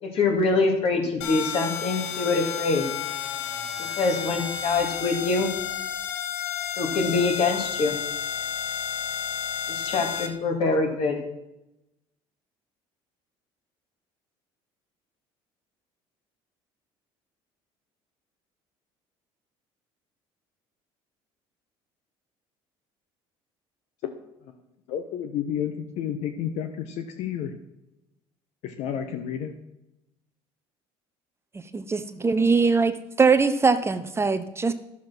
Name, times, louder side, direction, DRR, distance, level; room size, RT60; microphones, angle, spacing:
voice 1, 0.0-2.9 3.8-5.5 6.8-8.0 9.7-11.2, left 3 dB, 55° left, 3 dB, 2.7 m, -24 dB
sound 1, 1.2-10.3, left 8 dB, 90° left, 1.1 m, -31 dB
voice 2, 24.9-27.6 28.6-29.6, left 9 dB, 70° left, 7 dB, 0.9 m, -31 dB
voice 3, 31.5-34.7, right 4 dB, 20° right, 10 dB, 0.7 m, -22 dB
11.0 x 7.3 x 6.1 m, 0.91 s
supercardioid pair, 95°, 12 cm